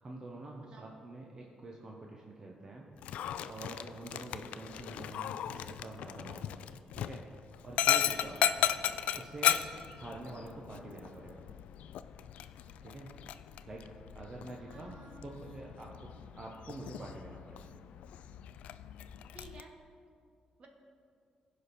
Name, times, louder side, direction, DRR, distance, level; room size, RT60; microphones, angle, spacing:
voice 1, 0.0-2.9 3.5-7.2 7.6-8.4 9.1-9.6 10.0-11.4 12.8-13.1 13.6-13.8 14.1-17.7, right 2 dB, 35° right, -1 dB, 0.9 m, -46 dB
voice 2, 0.6-1.0 14.7-15.5 19.3-19.8 20.6-20.7, right 2 dB, 55° right, 2 dB, 1.4 m, -54 dB
Dog, 3.0-19.6, left 10 dB, 85° left, 0.3 m, -36 dB
15.5 x 5.2 x 4.2 m, 2.3 s
cardioid pair, 105°, 2 cm